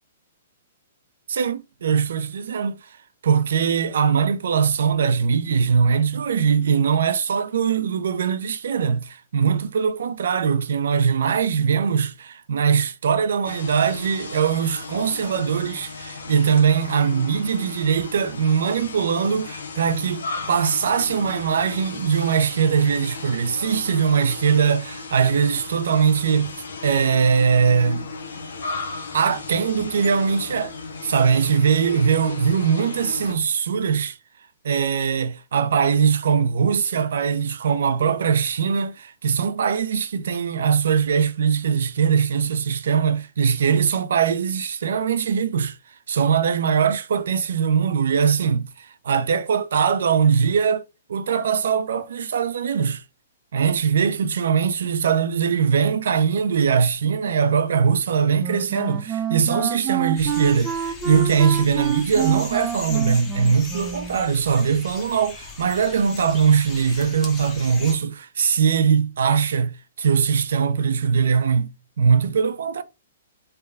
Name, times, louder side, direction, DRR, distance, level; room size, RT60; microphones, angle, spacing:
voice 1, 1.3-2.9 3.2-26.5 26.8-28.1 29.1-30.7 31.0-34.2 34.6-45.8 46.1-50.8 51.1-53.0 53.5-71.7 72.0-72.8, right 6 dB, 75° right, 0.5 m, -21 dB
sound 1, 13.4-33.3, left 4 dB, 90° left, 0.7 m, -36 dB
Wind instrument woodwind instrument, 58.3-64.2, right 9 dB, 15° right, 0.5 m, -28 dB
sound 2, 60.2-68.0, left 4 dB, 20° left, 0.8 m, -39 dB
3.3 x 2.2 x 3.4 m
hypercardioid pair, 155°, 0 cm